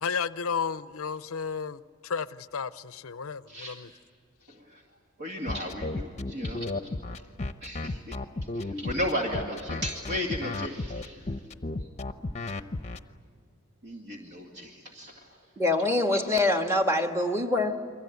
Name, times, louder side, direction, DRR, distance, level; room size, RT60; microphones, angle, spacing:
voice 1, 0.0-3.9, left 6 dB, 70° left, 0.7 m, -33 dB
voice 2, 3.5-3.9 4.5-4.8 5.2-6.7 7.6-8.2 8.5-11.4 11.8-11.9 13.8-15.4 16.1-16.4, equal, 50° right, 2.3 m, -35 dB
sound 1, 5.5-13.0, left 2 dB, 30° left, 0.8 m, -33 dB
voice 3, 15.6-17.8, left 2 dB, 10° right, 1.6 m, -24 dB
29.5 x 23.0 x 8.1 m
head